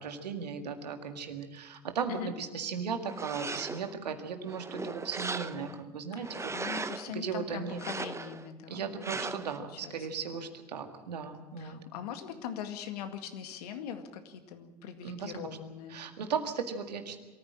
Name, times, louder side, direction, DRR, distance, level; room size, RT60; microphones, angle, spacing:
voice 1, 0.0-7.8 8.7-11.8 15.0-15.3 15.9-17.2, right 6 dB, 80° right, 6 dB, 2.0 m, -37 dB
sound 1, 3.0-3.9 4.4-5.8 6.2-7.1 7.7-8.5 9.0-9.6, right 3 dB, 15° right, 0.9 m, -38 dB
voice 2, 6.2-8.9 9.2-9.3 9.6-9.9 10.3-10.4 11.6-16.0, left 9 dB, 70° left, 7 dB, 2.1 m, -41 dB
23.0 x 14.5 x 8.7 m, 1.2 s
hypercardioid pair, 75°, 21 cm